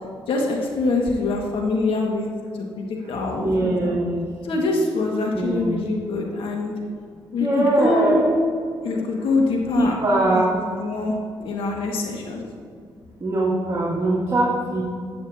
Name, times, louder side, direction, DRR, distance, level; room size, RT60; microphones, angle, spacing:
voice 1, 0.3-2.3 2.5-3.9 4.4-6.7 7.3-8.2 8.8-10.0 10.3-11.1 11.4-12.4, left 3 dB, 80° left, 0 dB, 1.8 m, -24 dB
voice 2, 3.4-4.2 5.3-5.7 7.4-8.5 9.8-10.5 13.2-14.8, right 1 dB, 30° right, -6 dB, 2.3 m, -21 dB
12.0 x 8.7 x 2.8 m, 2.2 s
cardioid pair, 65°, 9 cm